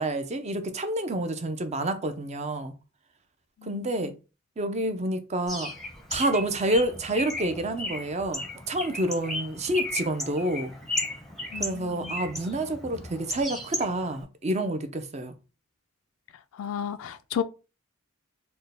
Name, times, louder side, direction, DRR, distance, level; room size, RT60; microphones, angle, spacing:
voice 1, 0.0-2.7 3.6-4.1 4.6-5.7 6.1-10.7 11.6-15.3, right 1 dB, 35° right, 0.5 m, -28 dB
voice 2, 3.6-4.1 11.5-12.1 16.6-17.4, left 8 dB, 85° left, 0.3 m, -33 dB
Bird, 5.5-14.2, left 1 dB, ahead, 0.7 m, -35 dB
4.3 x 2.2 x 3.3 m
head